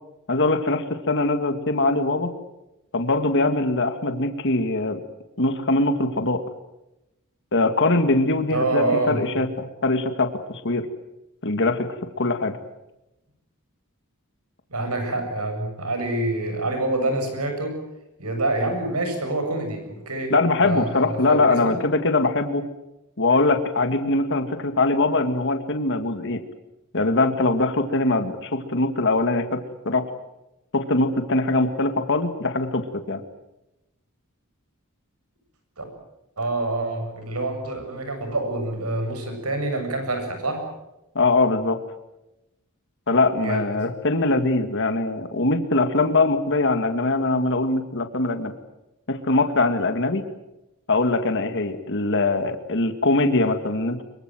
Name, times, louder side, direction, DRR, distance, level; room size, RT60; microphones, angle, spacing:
voice 1, 0.3-2.3 2.9-5.0 5.4-6.4 7.5-10.9 11.4-11.9 12.2-12.6 20.3-22.7 23.2-26.4 26.9-29.6 29.9-30.0 30.7-33.2 41.2-41.8 43.1-48.5 49.1-50.2 50.9-54.0, left 2 dB, 55° left, 8 dB, 2.0 m, -22 dB
voice 2, 8.5-9.2 14.7-17.8 18.2-20.3 20.6-21.8 35.8-35.9 36.4-40.6 43.4-43.6, right 2 dB, 85° right, 5 dB, 7.5 m, -26 dB
25.0 x 23.0 x 7.7 m, 0.93 s
head